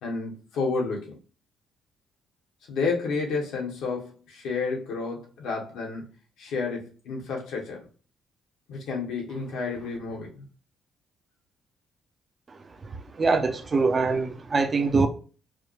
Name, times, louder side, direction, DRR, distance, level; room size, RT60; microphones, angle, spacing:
voice 1, 0.0-1.1 2.7-6.0 6.4-7.9 8.7-10.4, left 4 dB, 90° left, 1.2 m, -30 dB
voice 2, 13.2-15.1, right 4 dB, 35° right, 0.6 m, -23 dB
4.7 x 2.3 x 3.1 m
cardioid pair, 90°, 0 cm